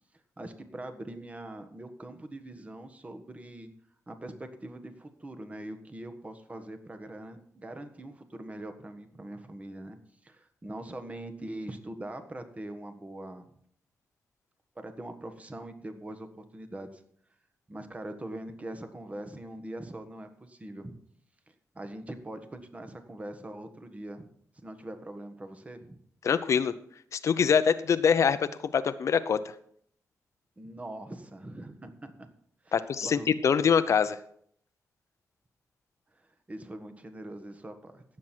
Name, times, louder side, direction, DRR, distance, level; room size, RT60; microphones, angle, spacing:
voice 1, 0.4-3.7 4.1-10.0 10.2-13.4 14.7-17.0 17.7-21.0 21.5-24.3 24.5-26.0 30.6-32.3 32.6-33.3 36.1-38.0, right 1 dB, 25° right, 7 dB, 1.5 m, -42 dB
voice 2, 26.2-26.7 27.1-28.4 28.7-29.4 32.7-34.2, left 7 dB, 65° left, 12 dB, 0.7 m, -24 dB
17.0 x 7.6 x 4.5 m, 0.64 s
cardioid pair, 90°, 6 cm